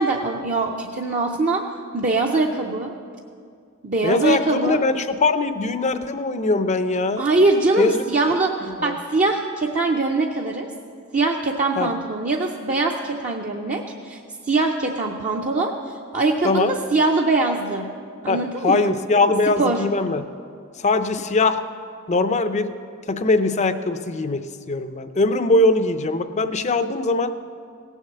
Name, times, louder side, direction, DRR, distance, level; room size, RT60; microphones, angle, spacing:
voice 1, 0.0-1.6 1.9-2.9 3.8-4.8 7.2-8.6 8.8-10.7 11.1-14.2 14.5-15.7 16.1-17.9 18.2-18.9 19.6-19.8, right 3 dB, 40° right, 0 dB, 0.6 m, -22 dB
voice 2, 4.0-7.3 7.8-8.0 8.8-9.0 11.8-11.9 16.4-16.7 18.3-20.2 20.8-21.6 22.1-22.8 23.1-27.3, left 3 dB, 35° left, 10 dB, 0.5 m, -21 dB
16.5 x 7.2 x 6.7 m, 2.2 s
head